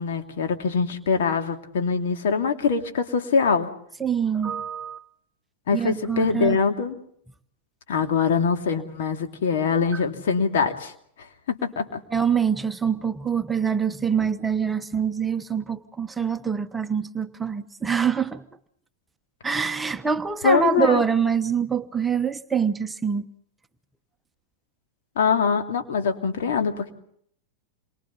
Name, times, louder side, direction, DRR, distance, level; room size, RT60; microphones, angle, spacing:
voice 1, 0.0-3.7 5.7-7.0 7.9-10.9 11.5-12.0 20.4-21.0 25.2-26.9, left 5 dB, 60° left, 2.6 m, -23 dB
voice 2, 4.0-5.0 5.7-6.6 9.9-10.0 12.1-18.4 19.4-23.2, right 7 dB, 10° right, 1.0 m, -25 dB
28.5 x 23.5 x 4.1 m
figure-of-eight pair, 95°, 0 cm